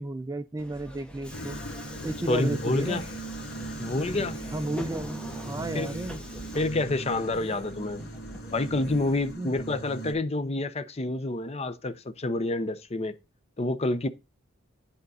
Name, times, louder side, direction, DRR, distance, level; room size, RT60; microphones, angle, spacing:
voice 1, 0.0-1.6 2.0-3.0 4.5-6.2 9.4-9.5, right 2 dB, 15° right, 0.3 m, -33 dB
Subway metro underground, 0.6-9.3, equal, 5° left, 1.0 m, -42 dB
sound 1, 1.3-10.1, right 2 dB, 75° left, 2.2 m, -39 dB
voice 2, 2.3-3.0 3.8-4.4 5.7-5.9 6.5-8.0 8.5-13.1 13.6-14.1, left 2 dB, 30° left, 0.6 m, -28 dB
10.5 x 3.8 x 4.1 m
head